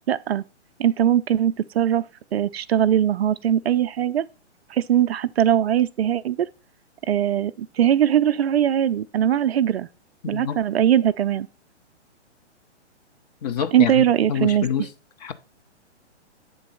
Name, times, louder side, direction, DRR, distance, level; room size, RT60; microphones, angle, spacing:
voice 1, 0.1-0.4 0.8-2.0 2.3-4.2 4.7-6.5 7.1-9.9 10.3-11.5 13.7-14.7, right 10 dB, 60° right, 0.5 m, -20 dB
voice 2, 10.2-10.6 13.4-14.9 15.2-15.3, left 8 dB, 35° left, 0.8 m, -27 dB
7.9 x 3.8 x 5.4 m
hypercardioid pair, 130°, 36 cm